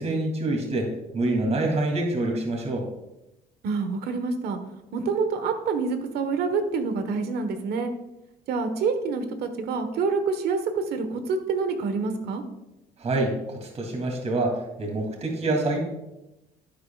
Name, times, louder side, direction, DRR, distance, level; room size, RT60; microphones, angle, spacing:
voice 1, 0.0-2.9 13.0-15.8, right 2 dB, 40° right, 1 dB, 2.9 m, -26 dB
voice 2, 3.6-4.6 4.9-7.9 8.5-12.4, right 4 dB, 70° right, 8 dB, 1.4 m, -27 dB
11.5 x 10.0 x 2.4 m, 0.95 s
cardioid pair, 110°, 17 cm